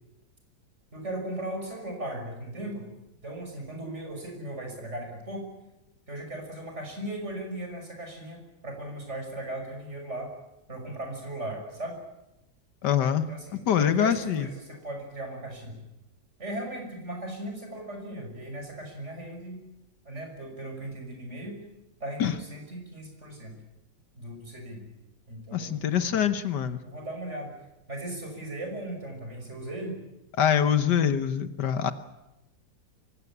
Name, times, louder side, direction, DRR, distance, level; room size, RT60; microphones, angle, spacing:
voice 1, 0.9-2.9 3.2-5.4 6.1-10.3 10.7-12.0 13.3-15.8 16.4-19.6 20.0-21.6 22.0-23.6 24.1-24.9 25.3-26.2 26.8-27.6 27.9-30.0, right 1 dB, 40° right, 3 dB, 6.3 m, -37 dB
voice 2, 12.8-13.2 13.7-14.5 22.2-22.4 25.5-26.8 30.4-31.9, left 9 dB, 75° left, 11 dB, 1.7 m, -24 dB
24.5 x 16.5 x 10.0 m, 0.96 s
omnidirectional pair, 1.9 m